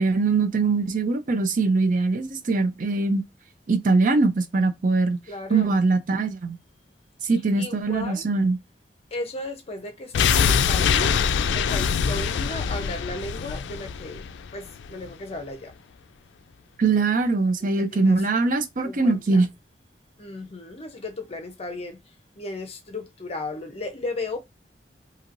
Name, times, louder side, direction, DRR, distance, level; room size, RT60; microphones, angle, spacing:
voice 1, 0.0-3.2 3.7-5.2 5.5-6.6 7.2-8.6 16.8-19.5, right 3 dB, 50° right, 0.5 m, -22 dB
voice 2, 5.3-5.8 7.6-8.3 9.1-11.2 11.5-14.3 14.5-15.8 17.8-18.2 18.8-19.5 20.2-24.4, left 2 dB, 35° left, 0.6 m, -35 dB
sound 1, 10.1-15.1 15.4-15.5, left 7 dB, 80° left, 0.3 m, -24 dB
3.0 x 2.7 x 2.5 m
head